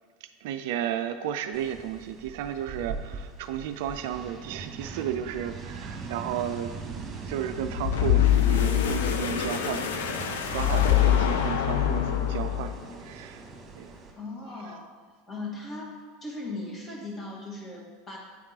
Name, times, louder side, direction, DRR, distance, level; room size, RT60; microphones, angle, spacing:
voice 1, 0.2-10.2 10.5-12.7 13.0-13.4 13.7-13.9, right 9 dB, 65° right, 9 dB, 0.3 m, -33 dB
sound 1, 1.5-14.1, right 4 dB, 35° right, 1.1 m, -40 dB
sound 2, 7.6-12.9, left 11 dB, 70° left, 0.5 m, -24 dB
voice 2, 14.2-14.8 15.3-15.9 16.2-18.2, left 2 dB, 25° left, -2 dB, 1.9 m, -38 dB
8.7 x 3.6 x 4.0 m, 1.5 s
hypercardioid pair, 85°, 0 cm